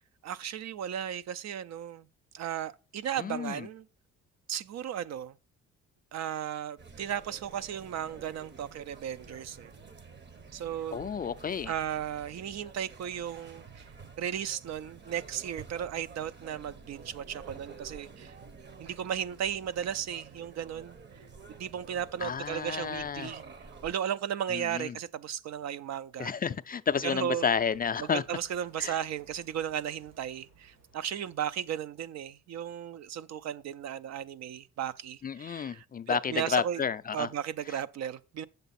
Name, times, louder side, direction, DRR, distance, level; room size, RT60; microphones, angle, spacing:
voice 1, 0.2-2.1 2.3-3.9 4.5-5.4 6.1-9.7 10.5-11.1 11.7-13.9 14.2-18.3 18.8-23.4 23.8-26.3 27.0-27.4 28.0-36.8 37.1-38.4, right 9 dB, 60° right, 0.5 m, -35 dB
voice 2, 3.2-3.7 10.9-11.7 22.2-23.3 24.5-25.0 26.2-28.2 28.8-28.9 35.2-37.3, left 6 dB, 30° left, 0.4 m, -31 dB
sound 1, 6.8-23.9, right 4 dB, 35° right, 0.9 m, -50 dB
sound 2, 27.3-32.4, right 4 dB, 85° right, 4.8 m, -61 dB
8.1 x 6.7 x 4.1 m
cardioid pair, 90°, 30 cm